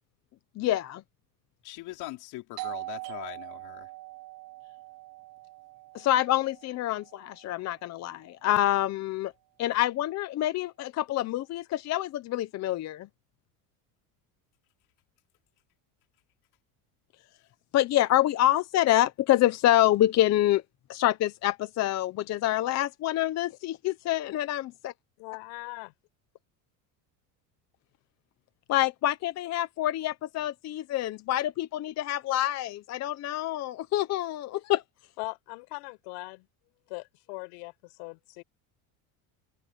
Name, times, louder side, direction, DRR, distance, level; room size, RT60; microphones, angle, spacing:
voice 1, 0.6-1.0 5.9-9.3 9.6-13.1 17.7-20.6 20.9-24.9 28.7-34.8, left 14 dB, 40° left, 0.8 m, -26 dB
voice 2, 1.6-3.9, left 19 dB, 60° left, 4.4 m, -41 dB
Doorbell, 2.6-8.0, right 21 dB, 60° right, 3.5 m, -43 dB
voice 3, 25.2-25.9 35.2-36.5 36.9-38.4, left 32 dB, 85° left, 6.1 m, -40 dB
cardioid pair, 155°, 42 cm